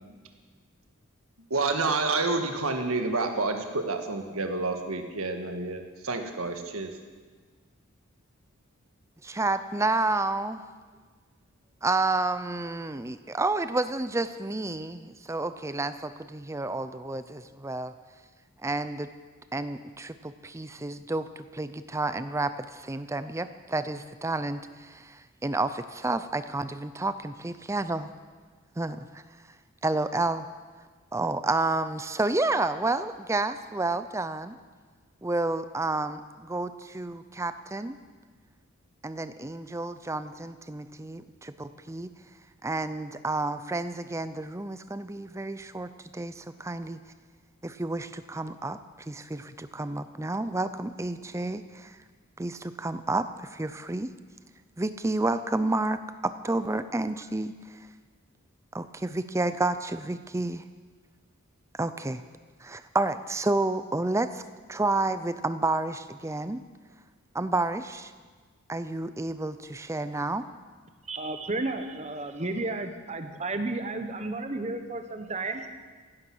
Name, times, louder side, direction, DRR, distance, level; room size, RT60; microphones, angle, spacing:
voice 1, 1.5-7.0, right 3 dB, 85° right, 5 dB, 1.6 m, -29 dB
voice 2, 9.2-10.6 11.8-17.9 18.6-19.1 19.5-28.1 28.8-29.2 29.8-30.5 31.1-34.6 35.2-38.0 39.0-42.1 42.6-47.0 47.6-52.0 52.4-54.1 54.8-57.9 58.7-60.6 61.8-62.2 62.6-64.4 64.7-66.6 67.3-68.1 68.7-70.4, right 2 dB, 15° right, 12 dB, 0.5 m, -30 dB
voice 3, 71.1-75.6, right 2 dB, 30° right, 7 dB, 1.1 m, -32 dB
16.5 x 11.5 x 6.2 m, 1.5 s
head